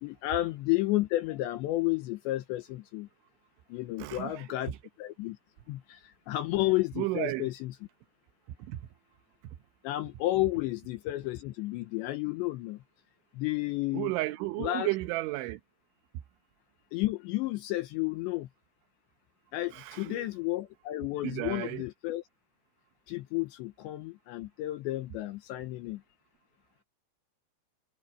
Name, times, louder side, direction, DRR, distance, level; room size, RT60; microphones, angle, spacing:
voice 1, 0.0-3.1 3.7-4.7 5.0-5.4 5.7-7.7 9.8-12.8 13.3-14.1 14.6-14.9 16.9-18.5 19.5-22.2 23.1-26.0, left 17 dB, 80° left, 2.7 m, -32 dB
voice 2, 4.0-4.8 7.0-7.5 8.7-8.8 13.9-15.6 19.7-20.2 21.2-21.8, right 18 dB, 75° right, 3.1 m, -33 dB
omnidirectional pair, 5.9 m